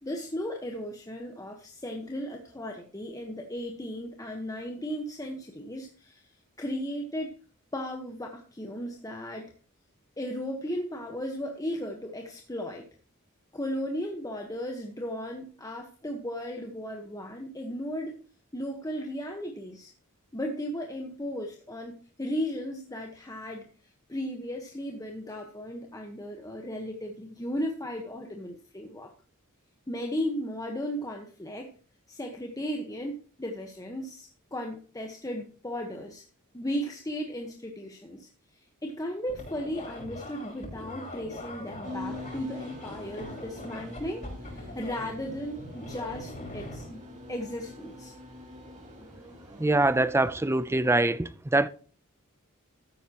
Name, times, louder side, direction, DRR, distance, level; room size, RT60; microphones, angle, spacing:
voice 1, 0.0-6.3 6.6-7.3 7.7-9.5 10.2-12.8 13.5-18.1 18.5-19.9 20.3-23.7 24.1-29.1 29.9-31.7 32.1-36.2 36.5-38.3 38.8-47.0 47.3-48.1, equal, 15° left, 1.2 m, -35 dB
sound 1, 39.3-46.9, left 1 dB, 35° left, 6.3 m, -42 dB
sound 2, 41.8-50.9, left 1 dB, 35° right, 3.3 m, -44 dB
voice 2, 49.6-51.7, right 2 dB, 10° right, 0.5 m, -24 dB
13.5 x 9.5 x 3.0 m
head